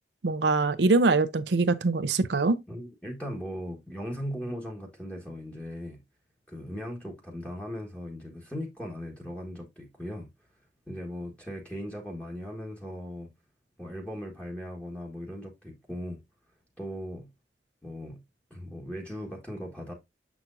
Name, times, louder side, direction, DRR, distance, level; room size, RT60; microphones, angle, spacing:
voice 1, 0.2-2.6, right 3 dB, 75° right, 0.6 m, -23 dB
voice 2, 2.7-6.0 6.5-10.3 10.9-13.3 13.8-16.2 16.8-17.3 17.8-18.2 18.5-19.9, equal, 5° left, 1.4 m, -38 dB
7.1 x 6.0 x 2.6 m
head